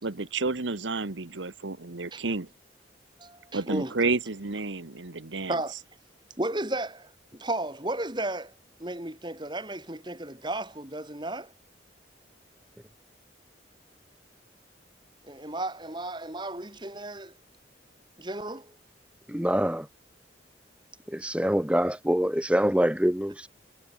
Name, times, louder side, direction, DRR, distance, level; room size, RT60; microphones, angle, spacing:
voice 1, 0.0-2.5 3.5-5.6, right 3 dB, 80° right, 1.2 m, -30 dB
voice 2, 3.2-3.9 5.5-5.7 6.4-8.5 8.8-11.5 15.2-17.3 18.2-18.7, right 1 dB, 25° right, 2.8 m, -34 dB
voice 3, 19.3-19.9 21.1-23.5, equal, 5° right, 1.0 m, -25 dB
head